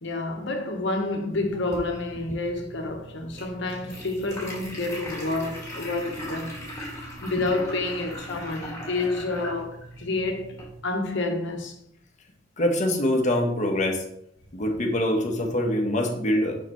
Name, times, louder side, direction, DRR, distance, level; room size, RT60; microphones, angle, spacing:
voice 1, 0.0-6.6 7.2-11.8, left 2 dB, 65° left, 1.1 m, -29 dB
sound 1, 1.3-10.8, equal, 15° left, 2.2 m, -39 dB
voice 2, 12.6-14.0 14.5-16.6, left 1 dB, 40° left, 1.1 m, -24 dB
6.5 x 5.8 x 3.1 m
head